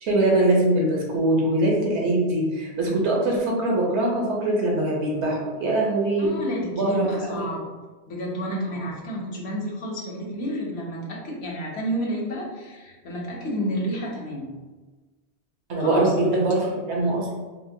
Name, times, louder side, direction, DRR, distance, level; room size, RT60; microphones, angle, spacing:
voice 1, 0.0-6.3 6.7-7.4 15.7-17.3, right 1 dB, 85° right, -2 dB, 1.1 m, -22 dB
voice 2, 6.2-7.7 8.1-14.5 15.8-16.1, equal, 75° left, -2 dB, 1.0 m, -30 dB
3.4 x 2.1 x 2.7 m, 1.3 s
omnidirectional pair, 1.1 m